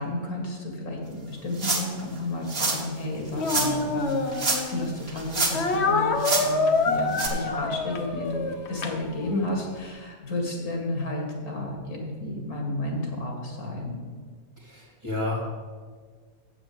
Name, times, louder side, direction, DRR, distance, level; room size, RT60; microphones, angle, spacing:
voice 1, 0.0-14.0, left 1 dB, 85° left, 1 dB, 2.5 m, -32 dB
sound 1, 1.6-2.0 2.5-2.8 3.5-3.7 4.3-4.8 5.1-5.8 6.2-6.5 7.1-7.3, right 3 dB, 40° right, 1.6 m, -26 dB
Speech, 3.3-4.9 5.5-9.6, left 3 dB, 50° left, 1.1 m, -27 dB
voice 2, 14.6-15.4, left 2 dB, 20° right, -3 dB, 2.7 m, -31 dB
7.9 x 7.0 x 7.6 m, 1.5 s
omnidirectional pair, 1.6 m